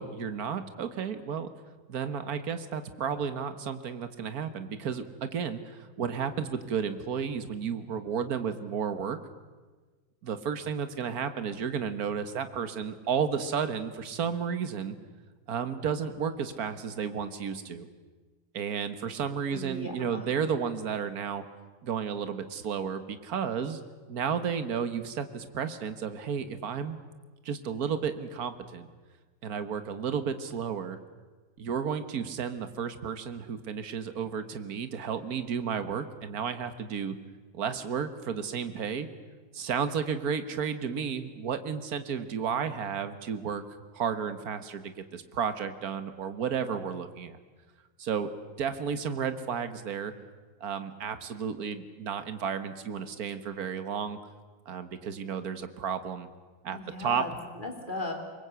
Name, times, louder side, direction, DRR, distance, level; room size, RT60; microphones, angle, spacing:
voice 1, 0.0-1.5 1.9-9.2 10.2-15.0 15.5-17.9 18.5-21.4 21.8-23.8 24.1-27.0 27.4-28.9 29.4-31.0 31.6-37.2 37.5-39.1 39.5-43.6 43.9-47.4 48.0-48.3 48.6-50.1 50.6-54.2 54.7-56.3 56.6-57.3, right 7 dB, 50° right, 10 dB, 1.7 m, -32 dB
voice 2, 19.5-20.2 56.7-58.1, left 2 dB, 20° left, 3 dB, 3.3 m, -37 dB
24.5 x 21.5 x 8.2 m, 1.4 s
omnidirectional pair, 2.3 m